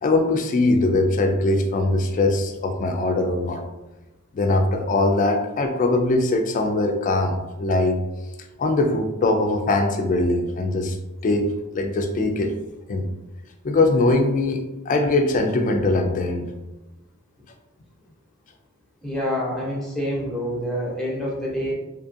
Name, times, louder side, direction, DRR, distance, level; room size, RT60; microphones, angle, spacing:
voice 1, 0.0-3.6 4.3-8.0 8.6-11.0 11.2-12.5 12.9-13.1 13.6-16.5, left 2 dB, 35° left, 5 dB, 0.3 m, -21 dB
voice 2, 19.0-21.7, equal, ahead, -4 dB, 0.7 m, -27 dB
2.7 x 2.4 x 2.6 m, 1.0 s
head